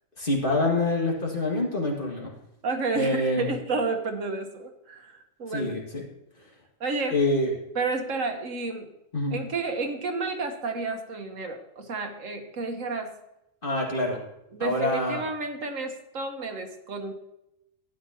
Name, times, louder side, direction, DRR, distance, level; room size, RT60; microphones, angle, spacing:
voice 1, 0.2-2.3 2.9-3.5 5.5-6.0 7.1-7.5 9.1-9.4 13.6-14.2 14.6-15.2, left 2 dB, 45° left, -2 dB, 2.2 m, -26 dB
voice 2, 2.6-5.8 6.8-7.2 7.7-8.9 9.3-13.1 14.5-17.1, right 3 dB, 85° right, 5 dB, 1.5 m, -31 dB
12.5 x 10.0 x 2.9 m, 0.85 s
omnidirectional pair, 1.3 m